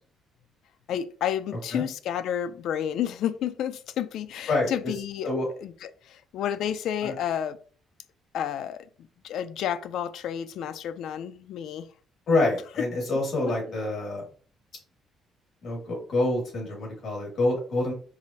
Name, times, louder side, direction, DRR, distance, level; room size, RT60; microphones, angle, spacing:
voice 1, 0.9-5.3 5.6-7.6 8.3-8.9 9.2-11.9 13.7-13.8, left 9 dB, 65° left, 0.3 m, -31 dB
voice 2, 12.3-14.2 15.6-17.9, left 2 dB, 45° left, 1.6 m, -26 dB
4.7 x 2.0 x 2.6 m
cardioid pair, 160°, 0 cm